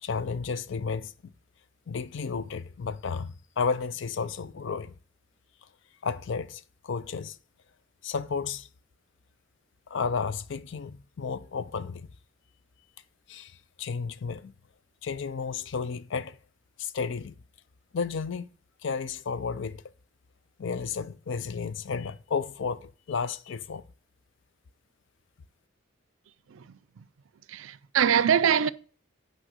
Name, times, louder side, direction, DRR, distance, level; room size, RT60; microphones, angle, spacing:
voice 1, 0.0-1.3 1.9-4.9 6.0-7.4 8.0-8.7 9.9-12.1 13.3-14.5 15.0-16.4 16.8-17.4 17.9-18.5 18.8-19.8 20.6-23.8, left 5 dB, 65° left, 0.5 m, -32 dB
voice 2, 27.5-28.7, right 8 dB, 80° right, 0.4 m, -23 dB
6.3 x 5.1 x 6.3 m
head